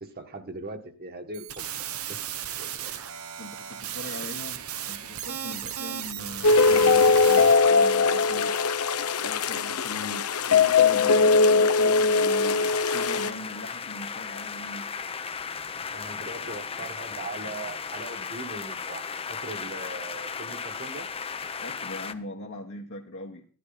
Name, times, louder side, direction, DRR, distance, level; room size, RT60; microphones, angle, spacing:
voice 1, 0.0-1.7 2.1-2.2 2.6-2.9 9.9-10.2 15.9-21.1, right 2 dB, 45° right, 5 dB, 1.8 m, -40 dB
sound 1, 1.3-7.6, right 10 dB, 80° right, 1.0 m, -35 dB
voice 2, 3.4-8.6 9.2-10.2 10.5-14.9 21.6-23.5, left 1 dB, 60° left, 0 dB, 1.4 m, -40 dB
sound 2, 6.4-13.3, left 4 dB, 90° left, 0.9 m, -20 dB
sound 3, 12.1-22.1, left 5 dB, 25° left, 0.7 m, -36 dB
13.0 x 12.5 x 4.1 m, 0.42 s
head